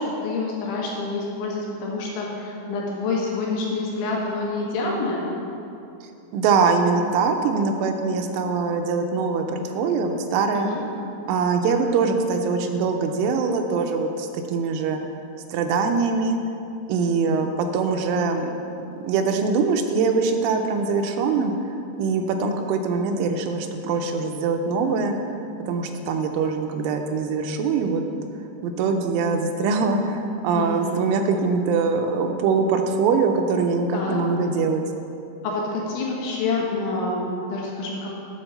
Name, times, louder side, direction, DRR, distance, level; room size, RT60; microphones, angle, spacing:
voice 1, 0.0-5.3 10.5-10.8 30.5-31.0 33.9-34.2 35.4-38.1, left 3 dB, 75° left, -3 dB, 3.6 m, -27 dB
voice 2, 6.3-10.7 11.3-15.0 15.5-16.4 16.9-18.5 19.0-21.5 22.0-25.2 25.7-28.0 28.6-34.8, right 4 dB, 85° right, 5 dB, 3.1 m, -23 dB
9.0 x 5.3 x 6.5 m, 2.7 s
omnidirectional pair, 5.6 m